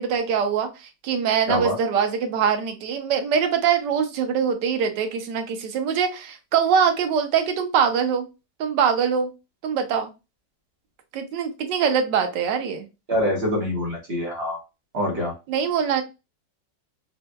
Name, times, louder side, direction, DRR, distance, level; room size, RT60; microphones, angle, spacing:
voice 1, 0.0-8.3 8.6-9.3 9.6-10.1 11.1-12.9 15.5-16.0, right 7 dB, 85° right, 6 dB, 1.3 m, -23 dB
voice 2, 13.1-14.6 14.9-15.3, left 1 dB, 40° right, 0 dB, 1.1 m, -25 dB
4.3 x 2.2 x 2.2 m, 0.27 s
omnidirectional pair, 1.8 m